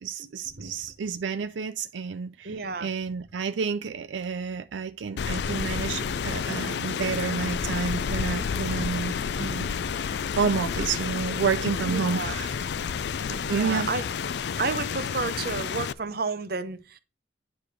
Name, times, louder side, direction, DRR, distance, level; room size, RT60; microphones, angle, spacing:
voice 1, 0.0-2.5 2.8-12.5 13.3-13.9, right 5 dB, 90° right, 0.4 m, -30 dB
voice 2, 2.4-2.9 9.8-10.0 11.8-12.4 13.4-14.0 14.6-17.0, right 4 dB, 55° right, 0.8 m, -32 dB
Rain, 5.2-15.9, left 6 dB, 65° left, 0.4 m, -30 dB
9.6 x 3.3 x 6.0 m
head